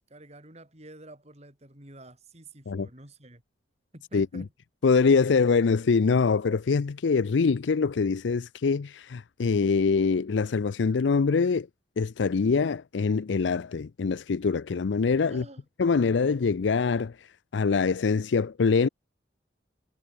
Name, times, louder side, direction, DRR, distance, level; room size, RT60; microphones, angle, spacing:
voice 1, 0.1-3.4 3.9-4.5 15.3-15.7, right 1 dB, 35° right, 5.6 m, -49 dB
voice 2, 4.1-4.4 4.8-11.7 12.0-15.4 15.8-17.2 17.5-18.9, left 5 dB, 85° left, 0.5 m, -24 dB
head